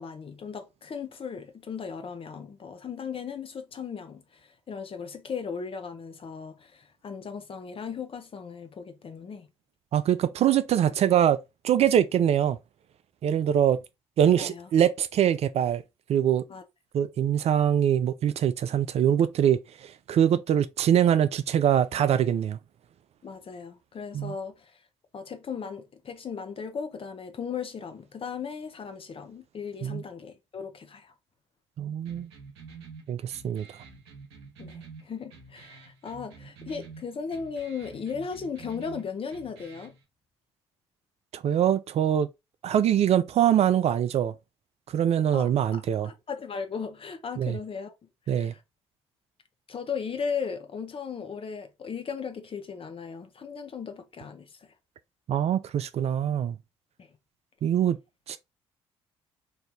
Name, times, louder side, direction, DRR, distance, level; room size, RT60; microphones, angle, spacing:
voice 1, 0.0-9.5 14.4-14.7 16.5-16.6 23.2-24.8 25.1-31.1 34.6-39.9 45.3-47.9 48.3-48.6 49.7-54.7 57.0-57.1, left 6 dB, 45° left, 0.9 m, -37 dB
voice 2, 9.9-12.6 13.2-13.8 14.2-15.8 16.1-16.4 16.9-22.6 24.1-24.3 29.8-30.0 31.8-32.3 33.1-33.7 41.3-42.3 42.6-44.3 44.9-46.1 47.4-47.6 48.3-48.5 55.3-56.6 57.6-58.0 58.3-58.4, right 10 dB, 50° right, 0.4 m, -23 dB
sound 1, 32.0-40.0, right 5 dB, 85° right, 0.8 m, -48 dB
3.2 x 2.7 x 3.5 m
hypercardioid pair, 45°, 13 cm